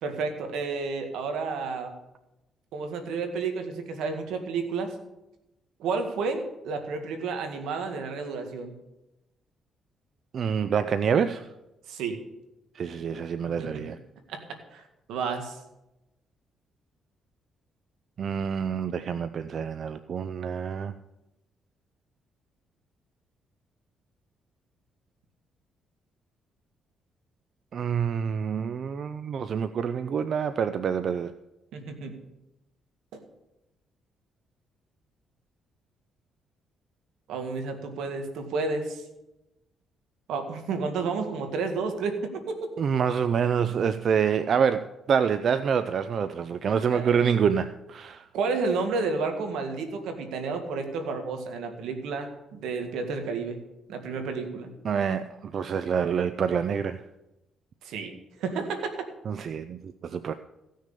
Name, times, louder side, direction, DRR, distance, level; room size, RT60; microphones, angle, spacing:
voice 1, 0.0-1.9 2.7-4.9 5.8-8.7 11.9-12.2 13.6-13.8 14.3-14.4 14.7-14.8 15.1-15.6 31.7-32.2 33.1-33.2 37.3-39.0 40.3-42.7 46.9-47.2 48.3-53.6 53.9-54.7 57.8-58.1 58.4-59.1, right 4 dB, 85° right, 1.9 m, -31 dB
voice 2, 10.3-11.5 12.8-14.0 18.2-20.9 27.7-31.3 42.8-48.3 54.8-57.0 59.3-60.3, right 7 dB, 55° right, 0.5 m, -27 dB
16.0 x 6.4 x 6.8 m
cardioid pair, 90°, 0 cm